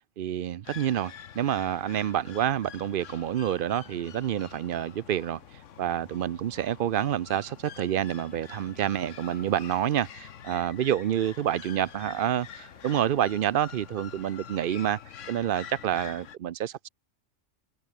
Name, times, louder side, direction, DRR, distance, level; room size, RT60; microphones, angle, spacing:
voice 1, 0.2-5.4 5.8-15.0 15.3-16.9, right 10 dB, 55° right, 0.6 m, -28 dB
sound 1, 0.6-16.4, left 9 dB, 75° left, 1.3 m, -46 dB
Bird / Ocean, 7.5-14.0, equal, 5° left, 3.9 m, -60 dB
omnidirectional pair, 1.3 m